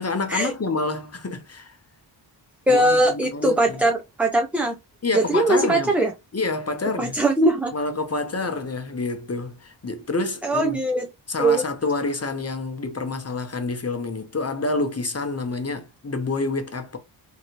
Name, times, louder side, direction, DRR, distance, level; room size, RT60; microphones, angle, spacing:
voice 1, 0.0-1.8 2.7-3.8 5.0-6.0 6.3-7.2 7.7-10.8 11.3-17.0, left 3 dB, 30° left, 0.8 m, -28 dB
voice 2, 2.7-4.8 5.1-6.1 7.0-7.7 10.4-11.1 11.4-11.6, right 1 dB, 5° right, 0.4 m, -20 dB
3.1 x 2.8 x 2.9 m
wide cardioid pair, 75°, 47 cm